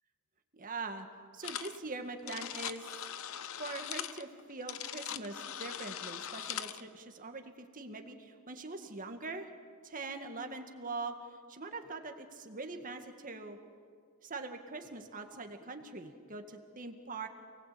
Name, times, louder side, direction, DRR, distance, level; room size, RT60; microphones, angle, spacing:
voice 1, 0.5-1.1 1.3-2.9 3.6-9.5 9.8-11.2 11.5-13.6 14.2-17.3, right 3 dB, 40° right, 6 dB, 2.0 m, -43 dB
sound 1, 1.4-1.8 2.0-6.8, left 10 dB, 65° left, 0.9 m, -41 dB
29.0 x 19.5 x 8.6 m, 2.1 s
head